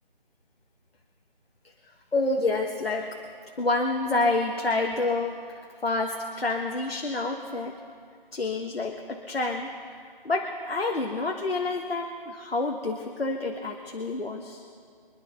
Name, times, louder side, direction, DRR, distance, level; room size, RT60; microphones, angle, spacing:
voice 1, 2.1-3.2 3.6-7.8 8.3-9.7 10.2-14.6, left 2 dB, 90° left, 2 dB, 1.4 m, -28 dB
25.0 x 11.0 x 4.0 m, 2.2 s
figure-of-eight pair, 165°, 29 cm